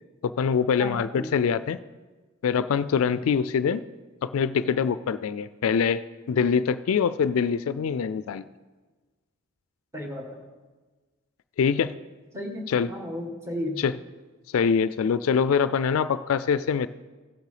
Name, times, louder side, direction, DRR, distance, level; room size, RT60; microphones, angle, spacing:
voice 1, 0.2-1.8 2.4-3.8 4.2-6.0 6.3-8.4 11.6-11.9 12.7-12.9 13.8-13.9 14.5-16.9, left 6 dB, 90° left, 14 dB, 0.4 m, -24 dB
voice 2, 0.8-1.3 9.9-10.4 12.3-13.8, left 1 dB, 15° right, 1 dB, 1.5 m, -34 dB
15.5 x 6.7 x 4.9 m, 1.3 s
head